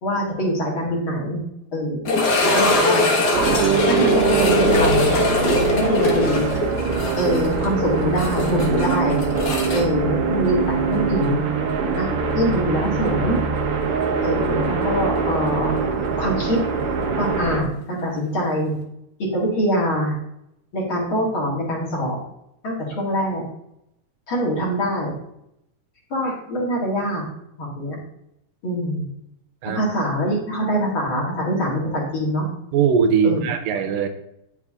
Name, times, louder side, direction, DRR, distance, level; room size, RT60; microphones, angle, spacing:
voice 1, 0.0-1.4 1.7-3.1 3.9-5.1 5.5-6.5 7.2-9.2 9.7-11.4 12.0-12.1 12.3-13.4 14.2-16.6 17.1-18.7 19.3-20.2 20.7-22.2 22.6-23.4 24.3-25.1 26.1-27.2 27.6-28.0 28.6-29.1 29.7-32.5 33.2-33.5, equal, 40° left, -3 dB, 2.6 m, -24 dB
sound 1, 2.0-11.0 11.2-11.3 11.9-12.0 14.6-14.7, left 2 dB, 75° left, 0.9 m, -21 dB
sound 2, 3.3-17.6, right 5 dB, 60° right, 1.6 m, -23 dB
voice 2, 32.7-34.1, right 7 dB, 80° right, 7 dB, 2.5 m, -20 dB
9.7 x 6.6 x 3.7 m, 0.81 s
omnidirectional pair, 3.9 m